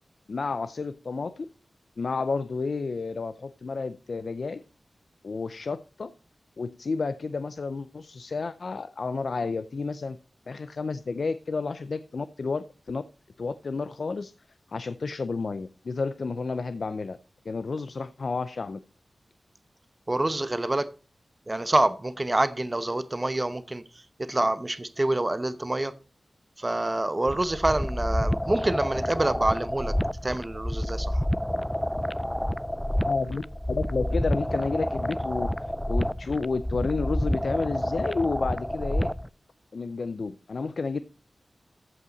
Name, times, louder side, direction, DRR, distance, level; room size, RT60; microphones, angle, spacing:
voice 1, 0.3-1.5 2.0-4.6 5.2-6.1 6.6-10.2 10.5-13.0 13.4-14.3 14.7-17.2 17.5-18.8 33.1-33.4 33.7-39.1 39.7-41.0, left 4 dB, 70° left, 0.5 m, -31 dB
voice 2, 20.1-20.9 21.5-23.8 24.2-25.9 26.6-29.9 30.2-31.3, right 2 dB, 30° right, 0.8 m, -26 dB
sound 1, 27.3-39.3, equal, 5° left, 0.4 m, -29 dB
14.5 x 5.5 x 4.0 m
wide cardioid pair, 70°, 0 cm